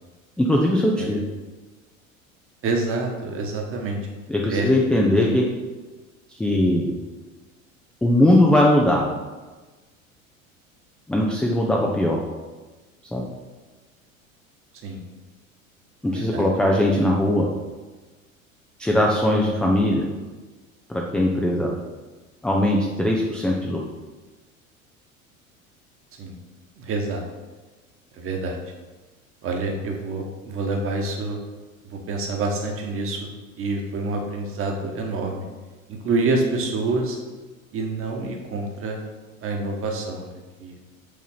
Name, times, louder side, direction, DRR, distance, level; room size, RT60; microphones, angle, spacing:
voice 1, 0.4-1.2 4.3-5.5 6.4-7.0 8.0-9.1 11.1-12.2 13.1-13.3 16.0-17.5 18.8-20.1 20.9-21.7 22.4-23.8, left 1 dB, ahead, -2 dB, 0.4 m, -20 dB
voice 2, 2.6-4.0 4.5-4.8 5.2-5.3 14.8-15.0 16.1-16.5 26.2-26.3 26.8-27.2 28.1-28.6 29.4-31.4 31.8-33.3 33.5-35.4 35.9-37.2 37.7-39.0 39.4-40.7, right 3 dB, 30° right, 1 dB, 1.3 m, -27 dB
5.2 x 3.8 x 5.6 m, 1.2 s
figure-of-eight pair, 75°, 41 cm